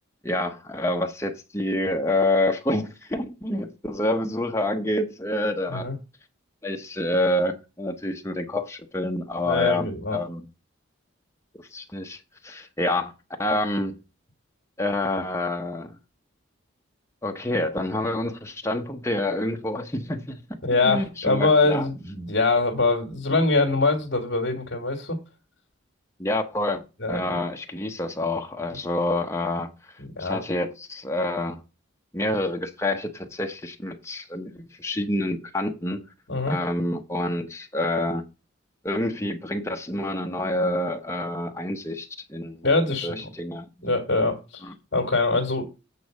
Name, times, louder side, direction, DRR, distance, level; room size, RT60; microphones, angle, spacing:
voice 1, 0.2-5.9 6.6-10.4 11.6-13.1 13.4-14.0 14.8-16.0 17.2-20.6 20.8-21.9 26.2-29.7 30.2-31.6 32.1-36.0 36.5-38.2 38.8-42.6 43.0-43.7 44.6-44.7, left 1 dB, 15° left, 0.9 m, -27 dB
voice 2, 9.4-10.2 20.6-25.2 27.0-27.4 28.7-28.8 30.0-30.4 36.3-36.6 42.6-43.3 43.8-44.6 44.9-45.7, left 3 dB, 55° left, 1.9 m, -23 dB
8.5 x 4.1 x 6.3 m
head